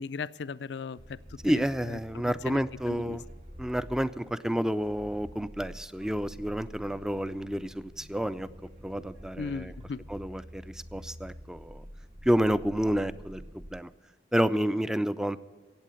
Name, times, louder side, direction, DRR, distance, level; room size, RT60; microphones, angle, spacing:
voice 1, 0.0-2.6 2.9-3.2 9.4-10.0, left 5 dB, 75° left, 16 dB, 0.4 m, -38 dB
sound 1, 1.0-13.7, equal, 45° right, 2.0 m, -48 dB
voice 2, 1.4-3.2 3.6-8.5 8.8-9.7 10.1-11.8 12.2-13.9 14.3-15.4, equal, 5° right, 14 dB, 0.4 m, -29 dB
16.0 x 8.6 x 7.6 m, 1.5 s
head